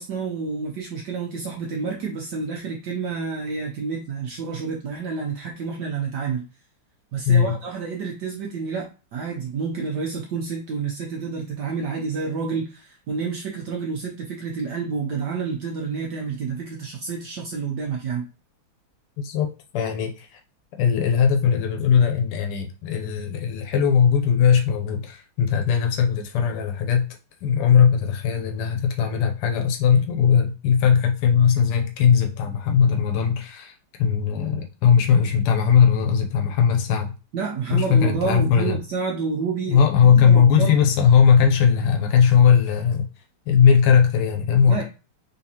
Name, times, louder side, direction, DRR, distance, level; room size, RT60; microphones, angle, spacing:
voice 1, 0.0-6.4 7.1-18.2 37.3-40.8 44.7-44.8, right 5 dB, 65° right, 0 dB, 1.0 m, -29 dB
voice 2, 7.3-7.6 19.2-20.4 20.8-27.0 27.4-33.7 34.0-37.1 37.7-38.8 39.7-43.1 43.5-44.8, left 7 dB, 90° left, 3 dB, 1.6 m, -19 dB
3.9 x 3.4 x 2.8 m, 0.32 s
omnidirectional pair, 2.4 m